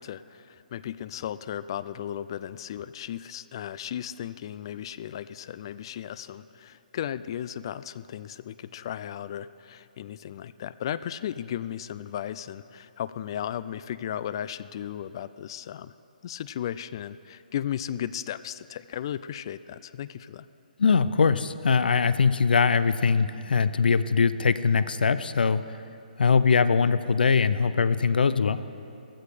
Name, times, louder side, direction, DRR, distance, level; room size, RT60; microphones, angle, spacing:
voice 1, 0.0-15.9 16.2-20.5, left 10 dB, 30° left, 16 dB, 0.3 m, -35 dB
voice 2, 20.8-25.6 26.2-28.6, left 5 dB, 75° left, 14 dB, 0.6 m, -22 dB
15.0 x 14.5 x 4.9 m, 2.9 s
hypercardioid pair, 165°, 5 cm